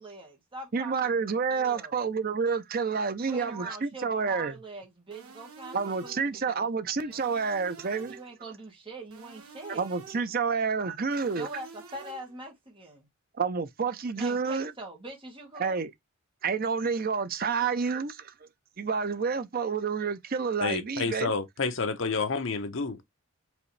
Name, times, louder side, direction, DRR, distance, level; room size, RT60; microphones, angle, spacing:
voice 1, 0.0-2.0 3.2-7.2 8.1-9.9 11.3-13.1 14.2-15.8, right 2 dB, 25° right, 1.6 m, -43 dB
voice 2, 0.7-4.5 5.7-8.2 9.7-11.5 13.4-14.7 15.6-15.9 16.4-18.3 18.8-21.3, right 5 dB, 40° right, 0.5 m, -29 dB
sound 1, 5.1-6.4 7.1-8.4 9.1-10.4 11.1-12.4, right 5 dB, 85° right, 1.5 m, -49 dB
voice 3, 20.6-23.0, left 4 dB, 60° left, 0.8 m, -29 dB
5.0 x 3.1 x 3.2 m
head